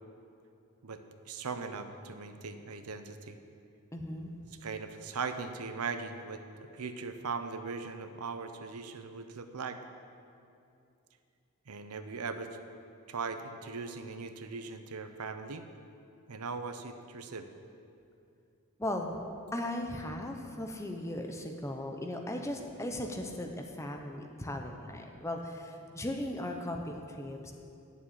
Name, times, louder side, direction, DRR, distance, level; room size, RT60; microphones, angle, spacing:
voice 1, 0.8-3.4 4.6-6.4 6.7-9.8 11.7-12.6 13.1-15.7 16.3-17.5, right 4 dB, 85° right, 8 dB, 0.7 m, -39 dB
voice 2, 3.9-4.3 18.8-19.2 19.5-27.5, left 1 dB, 15° left, 3 dB, 0.7 m, -37 dB
8.6 x 7.1 x 8.7 m, 2.6 s
head